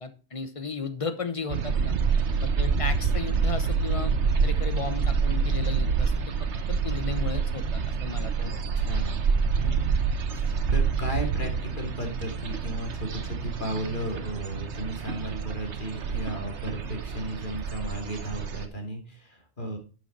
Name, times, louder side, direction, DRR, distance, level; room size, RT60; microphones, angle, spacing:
voice 1, 0.0-1.9 2.4-4.2 4.4-6.1 6.7-8.6, left 4 dB, 30° left, 10 dB, 1.1 m, -35 dB
sound 1, 1.5-18.7, right 5 dB, 85° right, 1.3 m, -27 dB
voice 2, 8.7-9.2 9.6-10.0 10.3-19.8, right 1 dB, 45° left, 2 dB, 3.0 m, -35 dB
11.0 x 6.3 x 4.1 m, 0.35 s
omnidirectional pair, 1.1 m